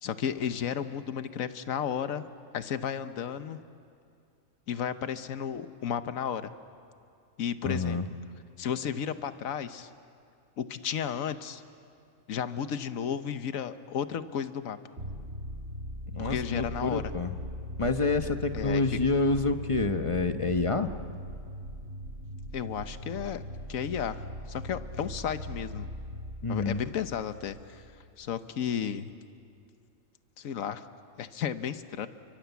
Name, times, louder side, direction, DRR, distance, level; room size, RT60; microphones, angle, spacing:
voice 1, 0.0-2.3 2.5-3.6 4.7-6.5 7.4-8.0 8.6-9.9 10.6-11.6 12.3-14.8 16.2-17.0 18.5-18.8 22.5-23.4 23.7-24.2 24.5-25.9 26.5-27.8 28.2-29.1 30.4-30.9 31.2-32.1, left 8 dB, 75° left, 11 dB, 1.4 m, -33 dB
voice 2, 7.6-8.0 16.1-17.4 17.8-20.9 26.4-26.8, left 3 dB, 25° left, 8 dB, 1.0 m, -28 dB
sound 1, 15.0-28.4, equal, 50° right, 2.3 m, -40 dB
30.0 x 24.0 x 8.2 m, 2.4 s
omnidirectional pair, 1.4 m